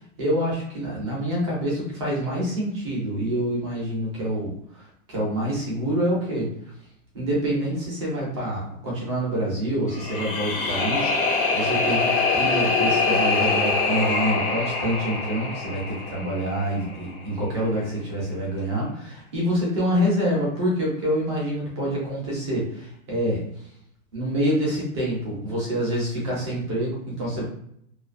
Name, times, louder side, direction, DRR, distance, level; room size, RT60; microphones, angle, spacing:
voice 1, 0.2-6.5 7.1-23.4 24.1-27.4, equal, 20° right, -5 dB, 0.5 m, -26 dB
sound 1, 9.9-17.0, left 4 dB, 40° left, 0.6 m, -24 dB
2.4 x 2.3 x 2.4 m, 0.71 s
supercardioid pair, 175°, 42 cm